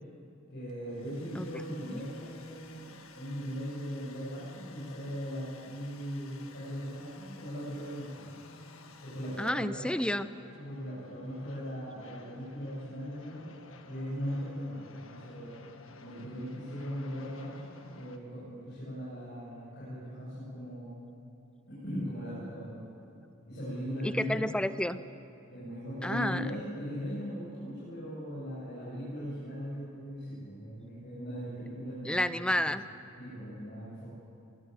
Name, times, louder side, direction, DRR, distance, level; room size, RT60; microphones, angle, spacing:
voice 1, 0.5-8.3 9.0-9.8 10.5-13.5 13.8-15.5 16.0-21.0 21.7-22.8 23.5-24.5 25.5-32.5 33.2-34.1, equal, 55° left, -10 dB, 8.0 m, -39 dB
Domestic sounds home sounds, 0.7-9.9, left 6 dB, 90° left, 1.6 m, -55 dB
sound 1, 7.2-18.2, left 2 dB, 70° left, 1.7 m, -54 dB
voice 2, 9.4-10.3 24.0-25.0 26.0-26.5 32.0-32.8, left 1 dB, 5° left, 13 dB, 0.6 m, -30 dB
23.5 x 16.5 x 9.7 m, 2.7 s
head